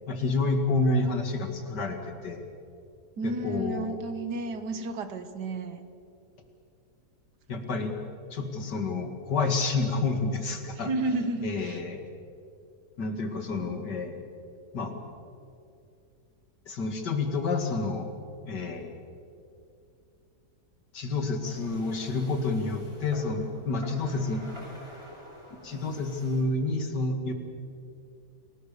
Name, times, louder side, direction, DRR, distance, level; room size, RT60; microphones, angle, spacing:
voice 1, 0.1-2.4 3.2-3.9 7.5-7.9 8.3-10.9 11.4-12.0 13.0-14.2 14.7-14.9 16.7-18.1 18.4-19.0 20.9-24.5 25.6-27.3, left 3 dB, 85° left, 5 dB, 2.9 m, -29 dB
voice 2, 3.2-5.9 10.8-11.8, right 2 dB, 75° right, 10 dB, 2.0 m, -32 dB
sound 1, 21.4-26.4, equal, 15° right, 6.6 m, -48 dB
28.5 x 19.0 x 7.0 m, 2.5 s
omnidirectional pair, 1.8 m